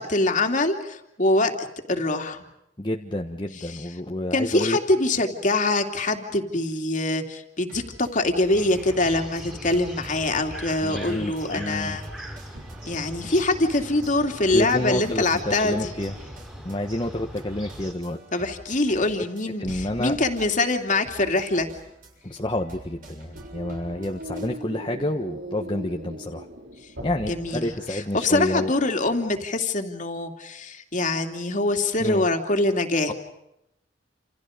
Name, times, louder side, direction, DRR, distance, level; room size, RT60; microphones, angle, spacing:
voice 1, 0.0-1.5 1.9-2.4 4.3-12.0 12.9-15.9 18.3-21.7 27.3-33.1, left 2 dB, 45° left, 4 dB, 2.8 m, -24 dB
voice 2, 2.8-4.8 10.8-12.0 14.5-16.2 16.6-18.2 18.9-19.3 19.6-20.2 22.2-26.4 27.0-28.7 32.0-32.3 33.1-33.2, left 1 dB, 25° left, 1 dB, 1.4 m, -29 dB
sound 1, 7.7-24.5, right 1 dB, 50° right, 7.2 m, -48 dB
sound 2, 8.5-17.9, equal, 5° right, 4.1 m, -40 dB
sound 3, 12.5-14.8 15.3-17.4 17.8-18.5 18.9-19.3 19.7-29.4, equal, 75° right, 3.3 m, -42 dB
29.0 x 28.5 x 5.2 m, 0.83 s
head